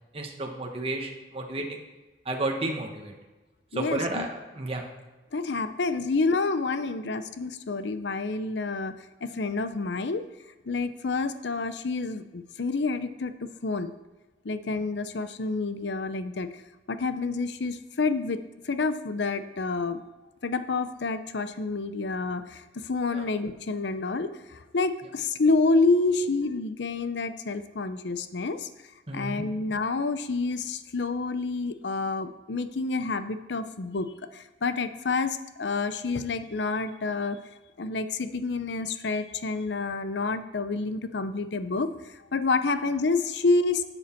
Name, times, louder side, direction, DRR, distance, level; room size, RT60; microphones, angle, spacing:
voice 1, 0.1-1.8 2.2-3.1 3.7-4.8 23.1-23.3 26.1-26.3 29.1-29.5 43.7-43.8, right 2 dB, 35° right, 2 dB, 1.2 m, -32 dB
voice 2, 3.7-4.3 5.3-8.9 9.2-10.3 10.7-13.9 14.4-16.5 16.9-20.0 20.4-28.7 29.1-37.4 37.8-41.9 42.3-43.9, left 3 dB, 75° left, 11 dB, 0.7 m, -28 dB
11.5 x 7.9 x 4.4 m, 1.2 s
head